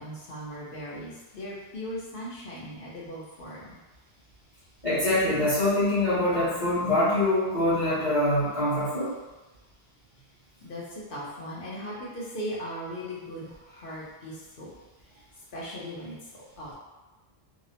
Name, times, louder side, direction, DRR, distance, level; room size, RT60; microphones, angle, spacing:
voice 1, 0.0-3.8 10.6-14.7 15.5-16.7, equal, 60° left, -6 dB, 0.9 m, -38 dB
voice 2, 4.8-9.2, left 1 dB, 35° left, -15 dB, 1.1 m, -24 dB
2.8 x 2.0 x 2.7 m, 1.1 s
omnidirectional pair, 1.1 m